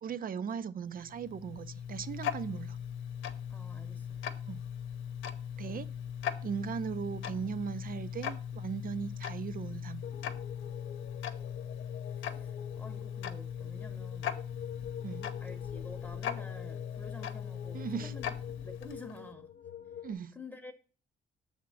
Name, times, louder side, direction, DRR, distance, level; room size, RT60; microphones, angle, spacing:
voice 1, 0.0-2.8 4.5-4.6 5.6-5.9 6.4-10.0 15.0-15.3 17.7-18.1 20.0-20.3, right 7 dB, 45° right, 0.6 m, -38 dB
Tick-tock, 0.9-19.3, left 8 dB, 80° left, 0.8 m, -39 dB
voice 2, 3.5-4.2 5.6-5.9 12.2-14.3 15.4-18.3 18.6-19.5 20.3-20.7, left 2 dB, 10° left, 0.9 m, -49 dB
sound 1, 10.0-20.1, left 9 dB, 50° left, 0.5 m, -47 dB
7.3 x 3.6 x 6.2 m
cardioid pair, 90°, 20 cm